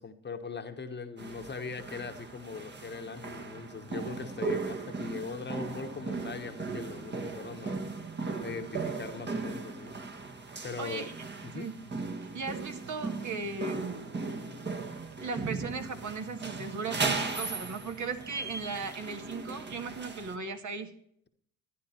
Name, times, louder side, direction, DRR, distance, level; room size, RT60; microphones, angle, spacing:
voice 1, 0.0-7.8 8.4-10.0 10.6-11.1 11.4-11.7, left 5 dB, 25° left, 7 dB, 1.3 m, -40 dB
sound 1, 1.2-20.4, right 3 dB, 30° right, 1.7 m, -37 dB
voice 2, 10.8-11.2 11.5-11.7 12.2-14.0 14.8-14.9 15.2-20.9, right 4 dB, 50° right, 5 dB, 2.1 m, -37 dB
12.5 x 10.5 x 4.5 m, 0.67 s
supercardioid pair, 75°, 38 cm